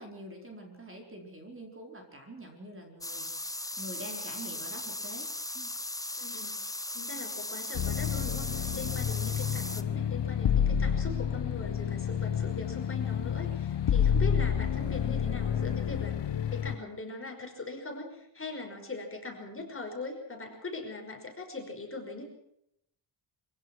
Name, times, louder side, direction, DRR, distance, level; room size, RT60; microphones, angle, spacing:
voice 1, 0.0-5.3 5.5-5.7, right 1 dB, 25° right, 2 dB, 4.6 m, -46 dB
sound 1, 3.0-9.8, left 2 dB, 5° left, 0.9 m, -38 dB
voice 2, 6.1-6.6 6.9-16.1 16.5-22.2, left 3 dB, 25° left, 2 dB, 5.5 m, -41 dB
sound 2, 7.7-16.7, left 8 dB, 60° left, 1.3 m, -29 dB
25.0 x 16.5 x 6.2 m, 0.76 s
wide cardioid pair, 125°, 48 cm